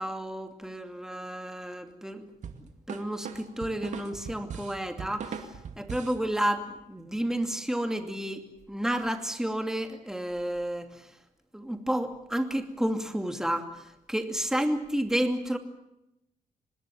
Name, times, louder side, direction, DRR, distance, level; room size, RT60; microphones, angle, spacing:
voice 1, 0.0-2.3 2.9-5.5 5.8-11.0 11.5-15.6, right 1 dB, 5° right, 6 dB, 2.5 m, -31 dB
sound 1, 2.4-6.2, right 6 dB, 65° right, 2.4 m, -39 dB
25.5 x 20.0 x 7.4 m, 0.87 s
cardioid pair, 105°, 14 cm